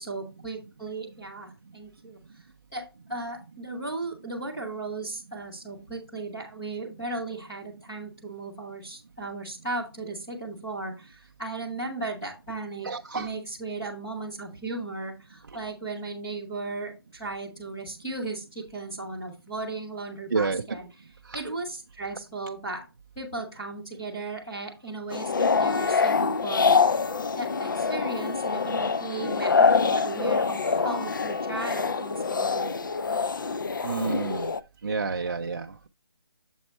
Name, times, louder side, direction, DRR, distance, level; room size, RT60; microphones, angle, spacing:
voice 1, 0.0-2.4 2.7-12.9 13.1-20.9 21.3-22.8 23.2-26.8 27.3-32.7, right 3 dB, 5° left, 0.6 m, -36 dB
voice 2, 12.8-13.3 20.3-20.6 21.3-21.4 33.8-34.5 34.8-35.9, right 4 dB, 50° right, 0.4 m, -29 dB
Trumpet, 25.1-32.4, left 6 dB, 75° left, 3.6 m, -44 dB
sound 1, 25.1-34.6, left 5 dB, 55° left, 0.4 m, -25 dB
7.0 x 4.3 x 4.2 m
hypercardioid pair, 180°, 13 cm